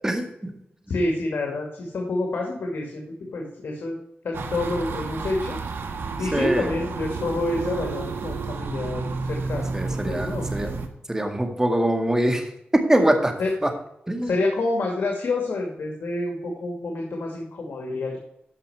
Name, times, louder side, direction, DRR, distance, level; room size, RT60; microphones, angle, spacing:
voice 1, 0.0-0.5 6.3-6.7 9.7-10.7 11.1-12.5 12.7-13.3 13.6-13.7 14.1-14.3, right 1 dB, 15° right, 4 dB, 2.0 m, -23 dB
voice 2, 0.9-3.0 3.3-4.0 4.2-5.6 6.2-9.7 10.0-10.5 13.4-13.5 14.2-18.2, left 2 dB, 80° left, 0 dB, 2.1 m, -28 dB
sound 1, 4.3-10.9, right 4 dB, 80° right, 1.3 m, -30 dB
13.5 x 5.4 x 4.8 m, 0.79 s
cardioid pair, 75°, 4 cm